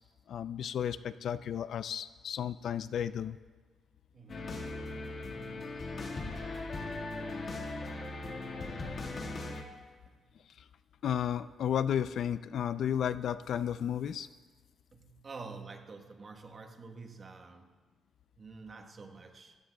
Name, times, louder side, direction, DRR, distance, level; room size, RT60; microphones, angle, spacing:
voice 1, 0.3-3.4 11.0-14.3, left 9 dB, 60° left, 14 dB, 0.4 m, -33 dB
voice 2, 4.1-4.6 8.2-8.3 10.1-10.2 14.9-17.8 18.4-19.6, right 4 dB, 30° right, 4 dB, 1.2 m, -49 dB
sound 1, 4.3-9.6, left 2 dB, 35° left, 1.7 m, -39 dB
25.5 x 15.5 x 2.3 m, 1.4 s
cardioid pair, 160°, 0 cm